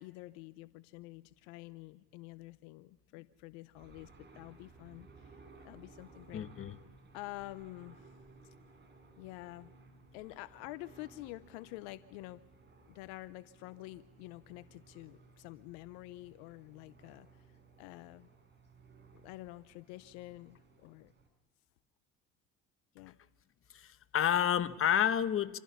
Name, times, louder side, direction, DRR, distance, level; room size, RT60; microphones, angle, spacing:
voice 1, 0.0-6.5 7.1-8.1 8.4-8.5 9.2-9.7 10.1-12.4 12.9-17.5 17.8-18.3 19.1-21.1 22.9-23.2, left 19 dB, 80° left, 0.7 m, -48 dB
sound 1, 3.7-21.3, right 4 dB, 35° right, 5.7 m, -59 dB
voice 2, 6.3-6.7 23.7-25.6, left 9 dB, 40° left, 1.1 m, -30 dB
27.0 x 15.5 x 7.1 m
supercardioid pair, 75°, 32 cm